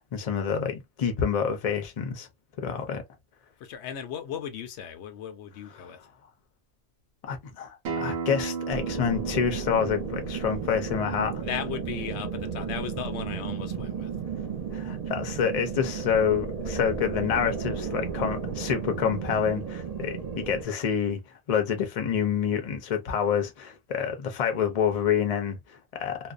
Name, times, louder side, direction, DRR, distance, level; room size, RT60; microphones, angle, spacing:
voice 1, 0.1-2.3 2.6-3.0 5.8-5.9 7.3-11.4 14.7-21.2 21.5-26.2, left 7 dB, 45° left, 0.6 m, -27 dB
voice 2, 3.6-6.0 11.4-14.1, left 8 dB, 85° left, 0.9 m, -36 dB
Acoustic guitar, 7.8-13.0, right 5 dB, 80° right, 1.0 m, -37 dB
sound 1, 8.7-20.6, right 6 dB, 45° right, 0.7 m, -34 dB
2.5 x 2.1 x 2.4 m
omnidirectional pair, 1.1 m